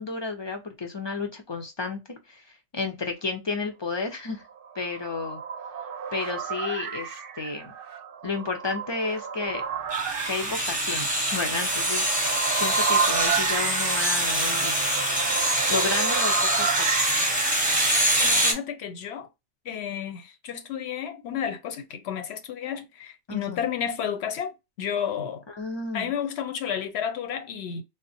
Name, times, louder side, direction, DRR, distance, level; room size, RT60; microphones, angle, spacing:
voice 1, 0.0-2.4 2.7-4.4 4.8-5.4 6.1-7.7 8.2-9.6 10.2-14.8 15.7-16.8 23.3-23.6 25.5-26.1, left 4 dB, 45° left, 0.3 m, -32 dB
sound 1, 4.6-18.0, right 7 dB, 60° right, 0.6 m, -32 dB
sound 2, 9.9-18.5, right 1 dB, 10° right, 0.7 m, -24 dB
voice 2, 18.2-19.3 19.6-25.4 25.9-27.8, left 8 dB, 70° left, 0.8 m, -32 dB
3.4 x 2.0 x 2.6 m
omnidirectional pair, 1.2 m